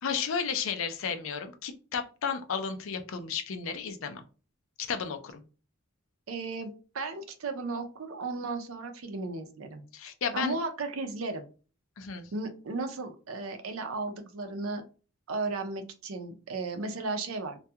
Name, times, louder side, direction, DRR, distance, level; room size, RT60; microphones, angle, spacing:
voice 1, 0.0-4.2 4.8-5.4 9.9-10.5 12.0-12.3, left 6 dB, 70° left, 7 dB, 0.4 m, -33 dB
voice 2, 6.3-9.8 10.3-11.4 12.3-14.8 15.3-17.6, right 3 dB, 80° right, 6 dB, 0.5 m, -35 dB
2.3 x 2.2 x 2.7 m, 0.35 s
head